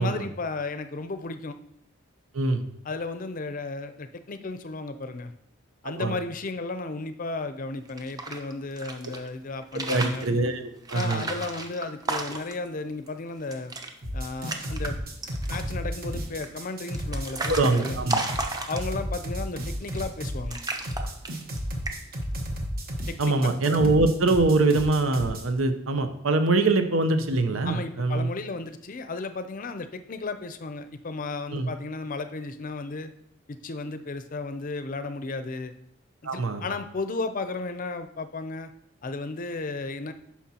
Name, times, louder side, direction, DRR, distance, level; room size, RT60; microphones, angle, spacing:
voice 1, 0.0-1.6 2.8-5.3 5.8-10.3 10.9-13.7 14.1-15.0 15.5-18.0 18.7-20.6 23.1-23.5 27.6-33.1 33.5-35.7 36.3-38.7 39.0-40.1, left 3 dB, 40° left, 9 dB, 0.5 m, -34 dB
sound 1, 7.8-9.2 9.6-10.3 10.8-12.7 13.1-13.2 13.4-13.9 14.2-14.9 15.2-15.7 16.4-19.1 19.8-20.2 20.5-21.6 21.8-22.2, right 2 dB, 20° right, 0.7 m, -33 dB
voice 2, 9.9-11.3 17.5-18.5 23.2-28.3 31.5-31.7 36.2-36.6, right 2 dB, 90° right, 8 dB, 0.8 m, -24 dB
sound 2, 14.0-25.4, equal, 45° right, 1.2 m, -33 dB
9.9 x 5.9 x 2.9 m, 0.76 s
head